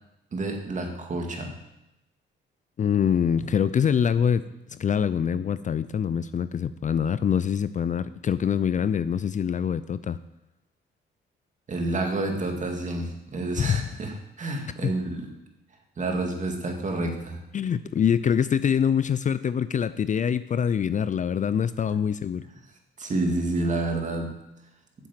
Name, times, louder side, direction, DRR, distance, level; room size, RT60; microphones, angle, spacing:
voice 1, 0.3-1.6 11.7-15.3 16.0-17.4 21.9-22.0 23.0-24.4, right 2 dB, 40° right, 3 dB, 2.2 m, -29 dB
voice 2, 2.8-4.4 4.7-10.2 13.6-13.9 14.8-14.9 17.5-22.4, left 8 dB, 40° left, 14 dB, 0.5 m, -24 dB
8.9 x 7.4 x 7.6 m, 0.90 s
cardioid pair, 90°, 20 cm